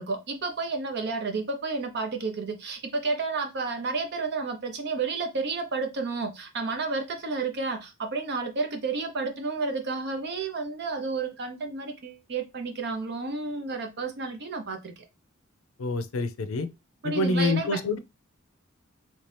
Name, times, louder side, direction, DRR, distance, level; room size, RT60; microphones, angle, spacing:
voice 1, 0.0-14.9 17.0-17.8, right 4 dB, 55° right, 0.7 m, -31 dB
voice 2, 15.8-16.7 17.0-18.0, left 2 dB, 85° left, 0.5 m, -26 dB
3.2 x 2.7 x 3.3 m
head